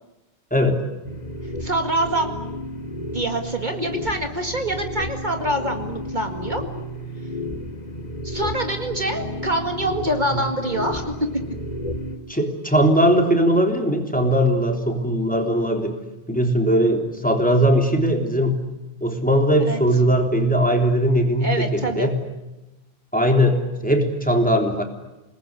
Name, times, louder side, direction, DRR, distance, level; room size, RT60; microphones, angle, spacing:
voice 1, 0.5-0.8 10.3-10.4 12.3-16.0 16.3-18.6 19.0-22.2 23.1-24.8, equal, 5° left, 3 dB, 3.5 m, -19 dB
sound 1, 1.0-12.2, equal, 40° left, 3.1 m, -32 dB
voice 2, 1.6-2.3 3.1-6.6 8.2-11.1 19.6-19.8 21.4-22.1, right 1 dB, 45° right, 4 dB, 2.2 m, -25 dB
29.0 x 20.0 x 9.8 m, 1.0 s
omnidirectional pair, 1.1 m